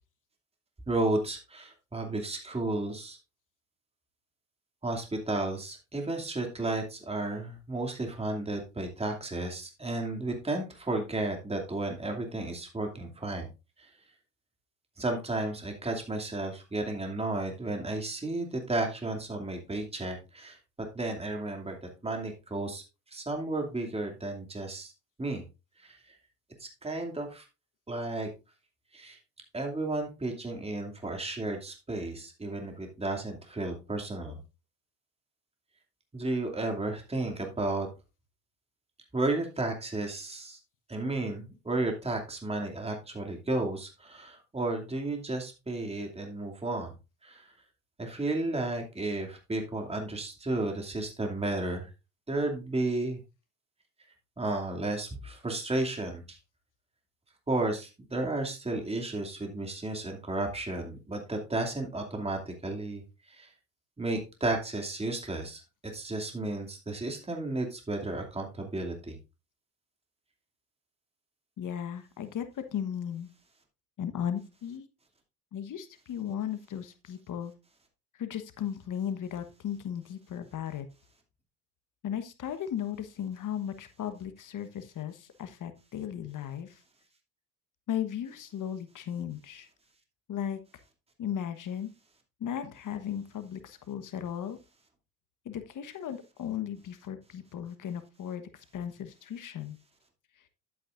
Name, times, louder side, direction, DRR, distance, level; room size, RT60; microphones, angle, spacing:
voice 1, 0.9-3.2 4.8-13.5 13.8-13.9 15.0-20.6 20.9-21.8 22.0-22.8 23.1-24.9 25.2-25.4 25.8-26.0 26.6-27.4 27.9-28.3 28.9-29.2 29.5-34.4 36.1-37.9 39.1-40.6 40.9-46.9 47.2-47.4 48.0-51.9 52.3-53.2 54.4-56.4 57.5-63.0 63.3-63.5 64.0-65.6 65.9-69.2, right 2 dB, 15° right, 2 dB, 2.6 m, -33 dB
voice 2, 71.6-73.3 74.0-74.8 75.5-77.5 78.2-80.9 82.0-86.7 87.9-89.7 90.3-90.6 91.2-91.9 92.4-94.6 95.4-98.4 98.7-99.8, left 9 dB, 45° left, 10 dB, 1.3 m, -36 dB
11.5 x 8.7 x 2.6 m, 0.27 s
hypercardioid pair, 70°, 45 cm